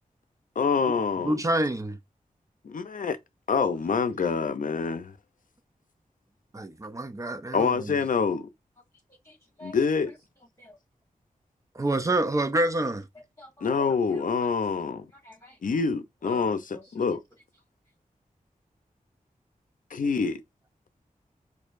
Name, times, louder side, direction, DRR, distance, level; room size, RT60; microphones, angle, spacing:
voice 1, 0.6-1.4 2.6-3.2 3.5-5.1 7.5-8.5 9.6-10.1 13.6-15.0 15.6-17.2 19.9-20.4, left 5 dB, 65° left, 0.6 m, -26 dB
voice 2, 1.2-2.0 6.5-7.9 11.8-13.0, right 1 dB, 20° right, 0.5 m, -27 dB
voice 3, 9.2-9.8 10.1-10.8 13.4-14.5 15.1-15.6 16.2-17.2, equal, 20° left, 1.4 m, -48 dB
4.4 x 2.7 x 2.5 m
wide cardioid pair, 75°, 15 cm